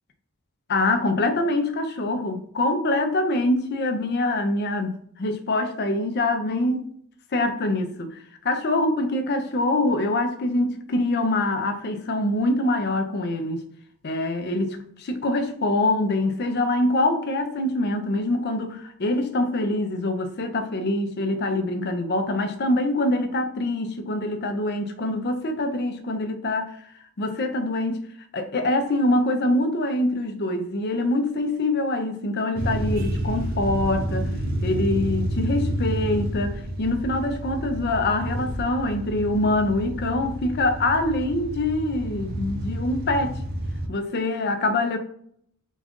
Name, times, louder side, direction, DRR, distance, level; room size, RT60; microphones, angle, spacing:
voice 1, 0.7-6.9 7.3-8.2 8.4-13.6 14.0-26.7 27.2-28.0 28.3-34.3 34.6-43.4 43.9-45.0, left 2 dB, 50° left, 6 dB, 0.6 m, -24 dB
sound 1, 32.5-43.9, right 1 dB, 45° right, 0.6 m, -29 dB
4.0 x 2.4 x 3.6 m, 0.65 s
head